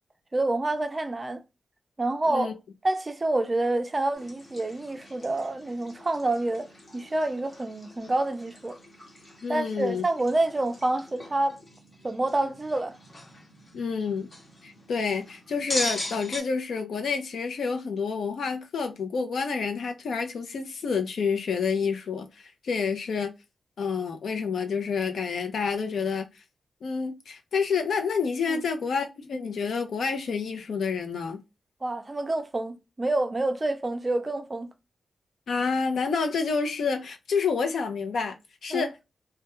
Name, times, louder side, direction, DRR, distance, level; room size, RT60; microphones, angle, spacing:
voice 1, 0.3-1.4 2.0-2.5 2.8-6.7 6.9-8.8 9.5-11.6 12.0-13.0 28.5-28.6 31.8-34.7 38.7-38.9, right 2 dB, 25° right, 0.4 m, -27 dB
sound 1, 4.1-16.4, left 1 dB, 35° left, 0.8 m, -40 dB
voice 2, 9.4-10.0 13.7-14.3 14.6-23.3 23.8-26.3 26.8-31.4 35.5-38.4 38.6-38.9, left 5 dB, 80° left, 0.5 m, -28 dB
2.2 x 2.2 x 2.9 m
wide cardioid pair, 110°, 0 cm